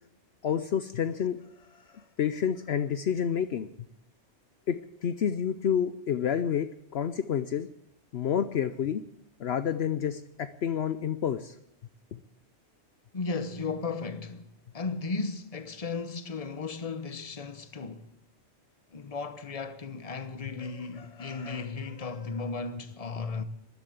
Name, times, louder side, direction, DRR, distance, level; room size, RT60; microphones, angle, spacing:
voice 1, 0.4-1.4 2.2-3.7 4.7-7.7 8.1-9.0 9.4-11.5 12.1-12.2, left 8 dB, 65° left, 0.9 m, -29 dB
voice 2, 1.8-2.1 13.1-14.4 14.7-18.1 18.9-23.4, left 4 dB, 35° left, 1.1 m, -35 dB
13.5 x 11.5 x 8.5 m
omnidirectional pair, 1.2 m